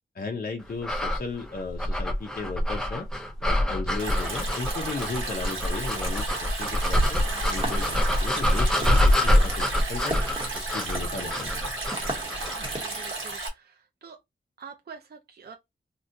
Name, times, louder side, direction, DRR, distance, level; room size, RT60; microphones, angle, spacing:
voice 1, 0.1-3.1 3.4-6.3 6.5-7.2 7.5-10.2 10.6-11.7, left 4 dB, 45° left, 0.5 m, -35 dB
sound 1, 0.8-12.7, left 1 dB, 5° left, 0.6 m, -25 dB
Stream, 4.0-13.5, right 3 dB, 80° right, 1.2 m, -34 dB
sound 2, 7.2-13.4, right 1 dB, 25° right, 1.0 m, -39 dB
voice 2, 12.6-14.2 14.6-15.6, right 6 dB, 50° right, 0.5 m, -46 dB
3.7 x 2.2 x 2.6 m
wide cardioid pair, 105°, 21 cm